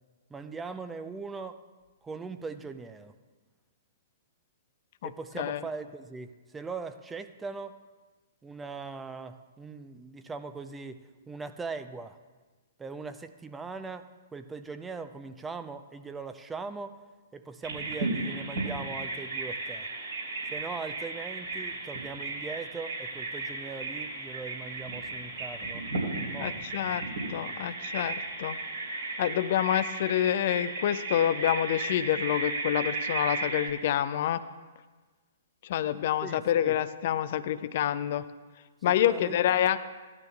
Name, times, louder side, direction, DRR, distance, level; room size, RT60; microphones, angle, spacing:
voice 1, 0.3-1.6 2.0-3.1 5.0-7.8 8.4-12.2 12.8-17.0 17.3-19.9 20.5-25.8 26.3-26.8 36.2-36.8 38.8-39.3, right 4 dB, 10° right, 10 dB, 0.4 m, -40 dB
Bird vocalization bird call bird song, 17.6-33.7, right 3 dB, 65° right, 3.3 m, -35 dB
voice 2, 26.4-28.6 29.2-34.4 35.6-38.2 38.8-39.8, left 11 dB, 50° left, 13 dB, 0.4 m, -27 dB
16.0 x 11.5 x 2.3 m, 1.3 s
figure-of-eight pair, 115°, 0 cm